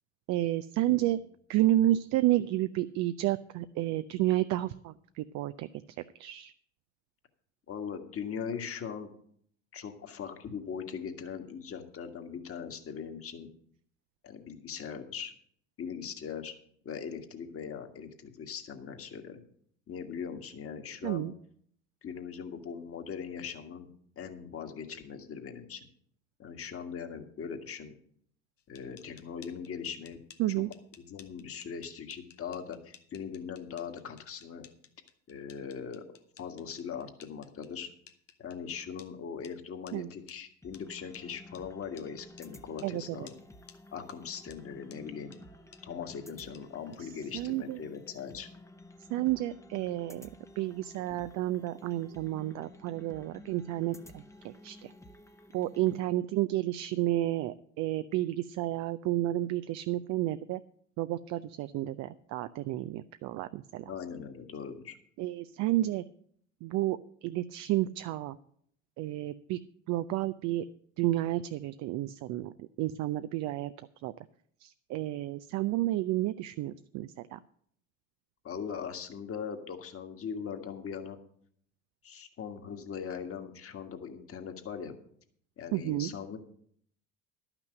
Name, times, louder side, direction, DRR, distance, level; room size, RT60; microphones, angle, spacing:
voice 1, 0.3-1.2 1.5-5.7 6.2-6.5 21.0-21.3 30.4-30.7 39.9-40.1 42.8-43.2 47.3-47.8 49.1-50.3 50.6-54.9 55.5-60.6 61.0-63.8 65.2-66.0 66.6-68.4 69.0-69.6 69.9-70.7 71.0-73.7 74.0-74.1 74.6-77.4 85.7-86.1, right 15 dB, 50° right, 12 dB, 0.6 m, -31 dB
voice 2, 7.7-9.1 9.7-13.5 14.2-15.3 15.8-16.5 16.9-19.4 19.9-21.3 22.0-23.9 24.2-25.9 26.4-27.9 28.7-30.2 31.1-34.7 35.3-36.0 36.4-37.9 38.4-43.4 43.9-45.4 45.8-48.5 63.9-65.0 78.4-81.2 82.0-84.9 85.6-86.4, left 7 dB, 40° left, 6 dB, 1.8 m, -40 dB
sound 1, 28.6-39.1 39.4-39.5 39.9-40.0 40.3-40.4 40.7-40.8 41.1-41.2 41.6-41.7 42.0-42.1 42.4-42.5 42.8-42.9 43.3-43.4 43.7-43.8 44.1-44.2 44.5-44.6 44.9-45.0 45.3-45.4 45.7-45.8 46.1-46.2 46.5-46.6 46.9-47.0, left 9 dB, 90° left, 1.0 m, -55 dB
sound 2, 40.6-56.0, left 1 dB, 10° left, 1.0 m, -53 dB
11.5 x 6.0 x 7.7 m, 0.64 s
hypercardioid pair, 75°, 36 cm